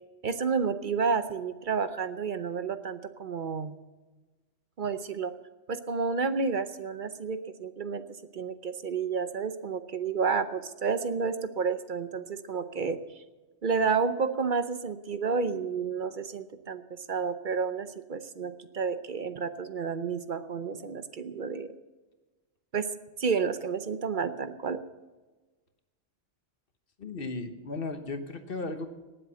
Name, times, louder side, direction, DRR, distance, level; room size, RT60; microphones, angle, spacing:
voice 1, 0.2-3.8 4.8-5.3 5.7-8.0 8.3-13.2 13.6-21.7 22.7-22.9 23.2-24.8, right 5 dB, 45° right, 11 dB, 0.8 m, -30 dB
voice 2, 27.0-28.9, left 3 dB, 50° left, 8 dB, 1.3 m, -35 dB
18.5 x 7.7 x 6.9 m, 1.2 s
omnidirectional pair, 1.3 m